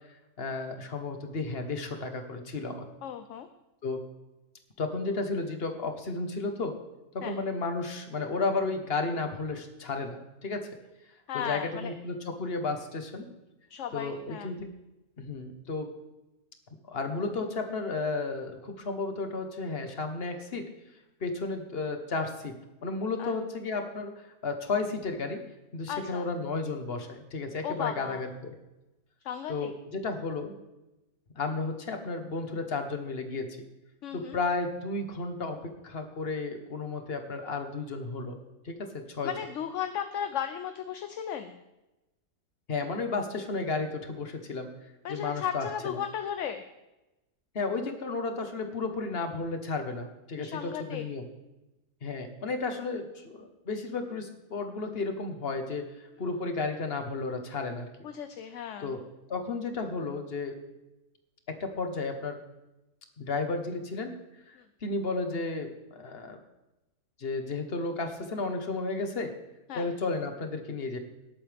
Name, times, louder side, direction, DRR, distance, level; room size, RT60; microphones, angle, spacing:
voice 1, 0.4-2.9 3.8-4.0 4.8-6.8 7.1-10.7 11.3-13.3 13.9-14.7 15.2-15.9 16.9-20.7 21.2-24.1 24.4-25.4 25.7-28.5 29.5-30.6 31.3-33.6 34.1-38.3 38.6-39.3 42.7-44.7 45.1-46.0 47.5-51.3 52.0-55.9 56.2-57.9 58.8-59.0 59.3-60.6 61.5-62.4 63.2-64.2 64.5-66.4 67.2-69.3 69.7-71.0, left 3 dB, 45° left, 6 dB, 1.5 m, -33 dB
voice 2, 3.0-3.5 7.2-7.3 11.3-11.9 13.7-14.6 23.2-23.3 25.9-26.3 27.6-28.3 29.2-29.7 34.0-34.4 39.2-41.6 45.0-46.6 50.4-51.1 58.0-59.0 64.5-64.6 69.7-69.9, left 9 dB, 60° left, 9 dB, 0.9 m, -35 dB
19.0 x 8.5 x 3.5 m, 0.98 s
omnidirectional pair, 1.6 m